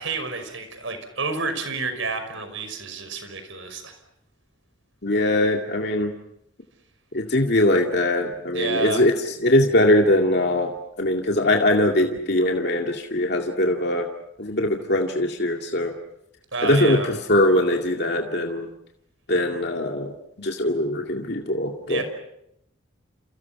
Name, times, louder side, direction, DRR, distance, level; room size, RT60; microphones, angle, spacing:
voice 1, 0.0-4.0 8.5-9.0 16.5-17.1 21.9-22.0, right 4 dB, 70° right, 8 dB, 5.6 m, -29 dB
voice 2, 5.0-6.1 7.1-14.1 14.4-16.0 16.6-18.7 19.3-20.1 20.4-22.0, left 1 dB, 55° left, 2 dB, 2.2 m, -21 dB
29.5 x 29.0 x 5.9 m, 0.78 s
head